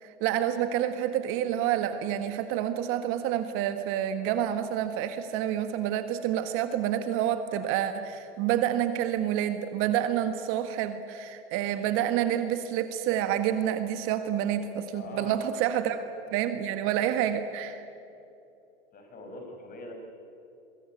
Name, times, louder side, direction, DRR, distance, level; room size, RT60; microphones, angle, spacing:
voice 1, 0.0-17.8, right 10 dB, 40° right, 9 dB, 1.6 m, -28 dB
voice 2, 14.9-15.9 18.9-19.9, left 2 dB, 25° left, 4 dB, 5.5 m, -43 dB
23.0 x 23.0 x 8.9 m, 2.8 s
hypercardioid pair, 120°, 32 cm